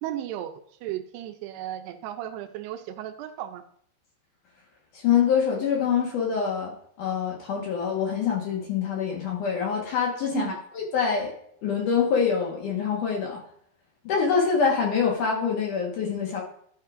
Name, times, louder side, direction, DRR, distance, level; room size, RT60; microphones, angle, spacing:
voice 1, 0.0-0.5 0.8-3.6 10.3-10.6, right 12 dB, 80° right, 8 dB, 2.6 m, -34 dB
voice 2, 4.9-6.7 7.0-11.3 11.6-13.4 14.0-16.4, left 6 dB, 60° left, -1 dB, 2.5 m, -25 dB
12.0 x 8.3 x 2.5 m, 0.65 s
omnidirectional pair, 4.9 m